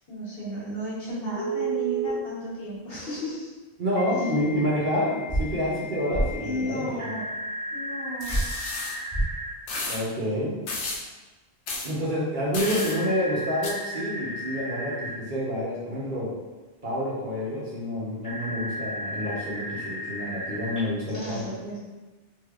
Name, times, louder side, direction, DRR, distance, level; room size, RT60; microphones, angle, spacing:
voice 1, 0.1-3.5 6.3-7.2 7.7-8.3 10.2-10.6 12.8-13.0 21.1-21.8, equal, 60° left, -9 dB, 1.3 m, -34 dB
Telephone, 1.4-2.1 3.9-9.5 12.6-15.1 18.2-20.8, right 2 dB, 15° left, 1.2 m, -34 dB
voice 2, 3.8-7.1 9.9-10.5 11.8-16.3 16.8-21.4, equal, 55° right, -6 dB, 0.8 m, -28 dB
sound 1, 5.3-5.4 6.1-6.3 8.3-8.4 9.1-9.3, right 1 dB, 15° right, 1.2 m, -24 dB
sound 2, 8.2-9.0 9.7-10.0 10.7-11.0 11.7-11.9 12.5-12.9 13.6-13.7, left 2 dB, 80° left, 0.9 m, -32 dB
3.2 x 2.7 x 2.3 m, 1.2 s
omnidirectional pair, 1.1 m